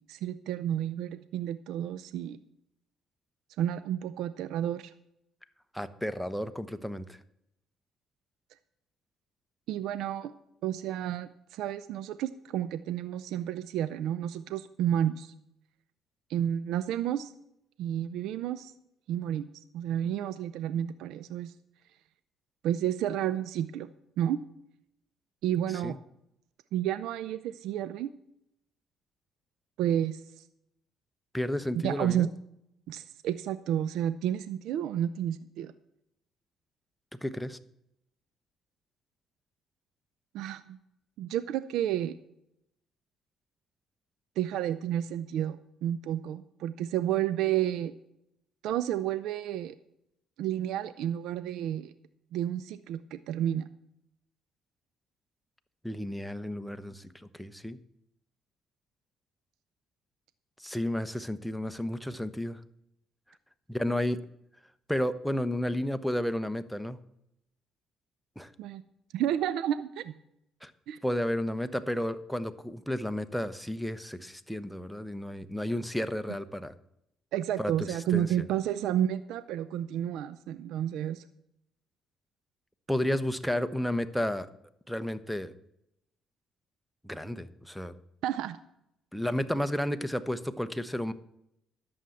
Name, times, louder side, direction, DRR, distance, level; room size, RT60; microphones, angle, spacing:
voice 1, 0.1-2.4 3.6-4.9 9.7-10.3 10.6-15.3 16.3-17.3 17.8-18.7 19.1-19.5 19.7-21.5 22.6-23.9 24.2-24.4 25.4-26.0 26.7-28.1 29.8-30.5 31.7-32.3 32.9-35.7 40.3-40.8 41.2-42.2 44.4-47.9 48.6-49.8 50.4-51.9 52.3-53.7 68.6-68.8 69.1-70.1 70.9-71.0 77.3-81.2 88.2-88.6, right 11 dB, 75° right, 14 dB, 0.5 m, -31 dB
voice 2, 5.7-7.2 25.8-26.0 31.3-32.3 37.2-37.6 55.8-57.8 60.6-62.6 63.7-64.2 64.9-67.0 68.4-68.5 70.6-70.7 71.0-76.7 77.6-78.4 82.9-84.5 84.9-85.5 87.0-87.9 89.1-91.1, left 1 dB, ahead, 11 dB, 1.0 m, -32 dB
11.0 x 7.1 x 7.7 m, 0.79 s
supercardioid pair, 60°, 0 cm